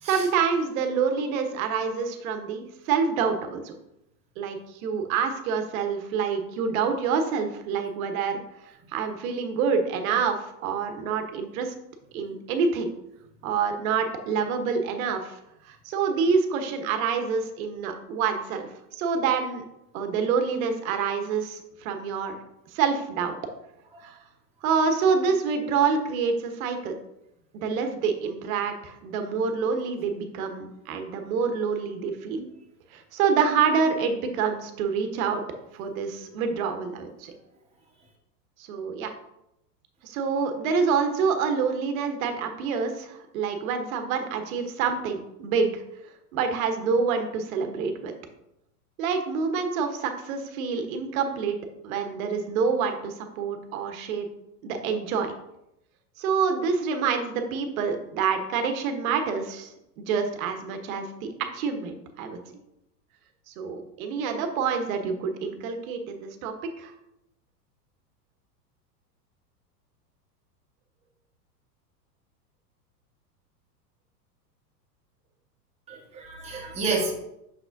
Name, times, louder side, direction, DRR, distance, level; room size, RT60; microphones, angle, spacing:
voice 1, 0.0-3.7 4.4-8.4 8.9-11.7 12.1-12.9 13.4-15.4 15.6-19.6 19.9-22.3 22.7-23.4 24.0-24.2 24.6-26.9 27.5-32.4 32.9-35.4 35.7-37.3 38.7-39.1 40.0-45.8 46.3-48.1 49.0-51.6 51.8-54.3 54.6-55.3 56.2-61.3 61.5-62.4 63.5-66.9, right 5 dB, 55° right, 6 dB, 1.2 m, -27 dB
voice 2, 75.9-77.1, right 3 dB, 15° right, -3 dB, 1.4 m, -30 dB
6.4 x 6.1 x 2.6 m, 0.84 s
hypercardioid pair, 100°, 49 cm